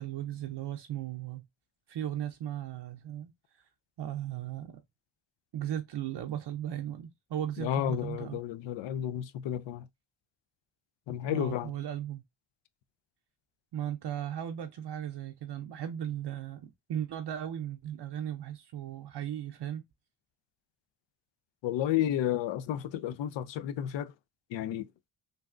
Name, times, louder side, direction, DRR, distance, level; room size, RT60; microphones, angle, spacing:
voice 1, 0.0-1.5 1.9-3.3 4.0-4.8 5.5-8.4 11.2-12.2 13.7-19.8, right 11 dB, 60° right, 0.6 m, -36 dB
voice 2, 7.6-9.9 11.1-11.7 21.6-24.1 24.5-24.9, left 11 dB, 65° left, 0.5 m, -32 dB
3.3 x 2.5 x 2.4 m
supercardioid pair, 45°, 48 cm